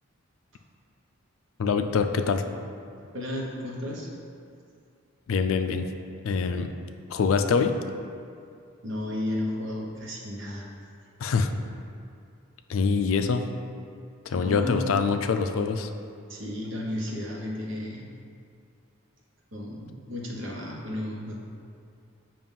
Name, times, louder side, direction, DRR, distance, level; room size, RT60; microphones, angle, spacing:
voice 1, 1.6-2.4 5.3-5.9 6.2-6.7 7.1-7.8 11.2-11.5 12.7-13.5 14.3-15.9, left 5 dB, 70° left, 7 dB, 0.4 m, -24 dB
voice 2, 3.1-4.1 8.8-10.7 14.3-14.9 16.3-18.1 19.5-21.4, left 1 dB, 60° right, -3 dB, 1.0 m, -33 dB
7.3 x 2.5 x 5.3 m, 2.4 s
head